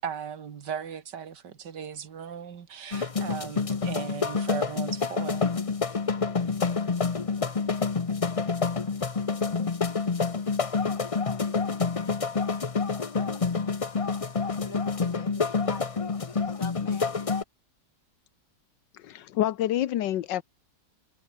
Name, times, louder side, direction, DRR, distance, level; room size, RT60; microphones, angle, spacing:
voice 1, 0.0-5.5, right 7 dB, 75° right, 2.2 m, -37 dB
sound 1, 2.9-17.4, left 4 dB, 30° left, 0.6 m, -28 dB
voice 2, 14.4-17.2, left 4 dB, 50° left, 2.9 m, -44 dB
voice 3, 19.0-20.4, left 12 dB, 90° left, 1.5 m, -27 dB
omnidirectional pair, 1.9 m